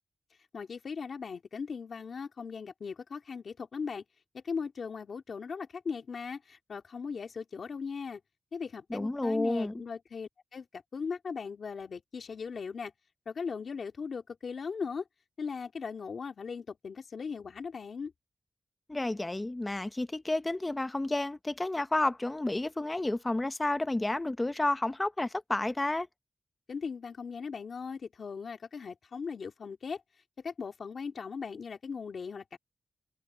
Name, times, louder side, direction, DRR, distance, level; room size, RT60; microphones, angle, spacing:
voice 1, 0.5-4.0 4.3-8.2 8.5-12.9 13.3-15.0 15.4-18.1 26.7-30.0 30.4-32.6, left 5 dB, 60° left, 2.5 m, -38 dB
voice 2, 8.9-9.7 18.9-26.1, left 2 dB, 15° left, 0.9 m, -31 dB
wide cardioid pair, 145°, 0 cm